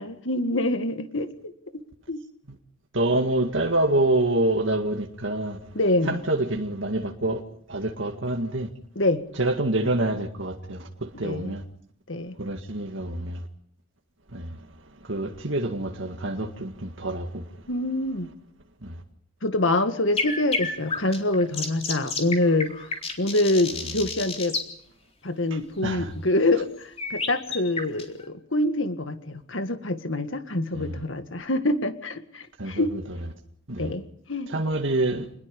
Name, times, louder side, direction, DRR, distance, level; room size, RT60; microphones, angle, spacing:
voice 1, 0.0-1.5 2.1-2.2 5.8-6.2 9.0-9.2 11.2-11.5 12.1-12.4 17.7-18.3 19.4-22.7 23.2-24.6 25.2-32.9 33.8-34.5, left 2 dB, 70° left, 2.0 m, -25 dB
voice 2, 2.9-5.6 6.1-7.4 7.7-8.7 9.4-10.8 11.2-11.6 12.4-13.4 14.3-14.4 15.1-17.4 25.8-26.1 30.8-30.9 32.6-33.2 33.7-33.9 34.5-35.2, right 2 dB, 65° right, 2.0 m, -26 dB
sound 1, 20.1-24.7 27.0-28.2, left 4 dB, 30° left, 4.0 m, -30 dB
28.0 x 20.5 x 5.4 m
head